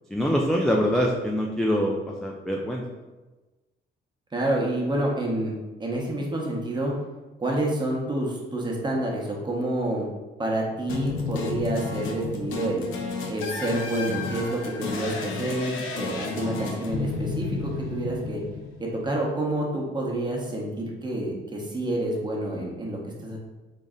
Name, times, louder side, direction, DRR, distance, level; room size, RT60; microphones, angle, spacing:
voice 1, 0.1-2.8, equal, 5° left, -1 dB, 0.3 m, -24 dB
voice 2, 4.3-5.5 5.8-6.9 7.4-10.1 10.4-12.8 13.3-18.4 18.8-23.4, right 1 dB, 20° right, -2 dB, 0.9 m, -28 dB
sound 1, 10.9-19.1, left 4 dB, 80° left, 0.6 m, -32 dB
3.8 x 2.1 x 3.6 m, 1.2 s
cardioid pair, 90°, 20 cm